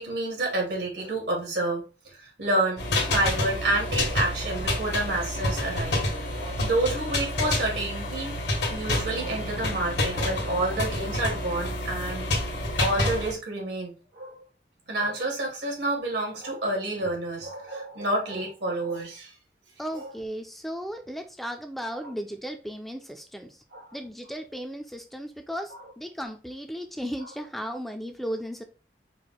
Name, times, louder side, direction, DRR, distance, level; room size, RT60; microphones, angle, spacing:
voice 1, 0.0-2.8 3.1-6.0 6.3-8.4 8.7-12.2 12.8-14.4 14.9-19.3 19.9-20.1 22.0-22.1 23.7-24.0, right 2 dB, 85° right, 2.1 m, -29 dB
sound 1, 2.8-13.3, left 1 dB, 80° left, 1.3 m, -28 dB
voice 2, 19.8-23.6 23.9-28.6, equal, ahead, 0.3 m, -35 dB
4.7 x 2.1 x 3.9 m
head